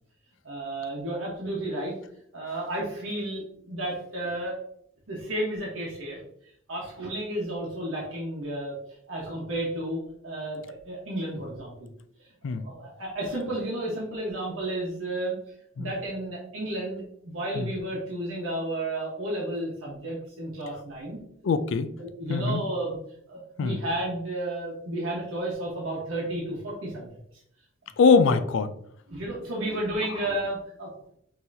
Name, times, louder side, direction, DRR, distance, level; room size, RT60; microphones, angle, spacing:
voice 1, 0.4-1.9 2.3-4.6 5.1-6.2 6.7-8.8 9.1-11.9 12.5-15.4 15.8-21.2 22.0-23.0 23.3-27.1 29.1-30.9, right 1 dB, 85° right, -4 dB, 1.2 m, -32 dB
voice 2, 21.4-21.9 22.3-22.6 23.6-23.8 28.0-28.7, left 5 dB, 70° left, 12 dB, 0.4 m, -22 dB
5.5 x 2.9 x 2.7 m, 0.69 s
head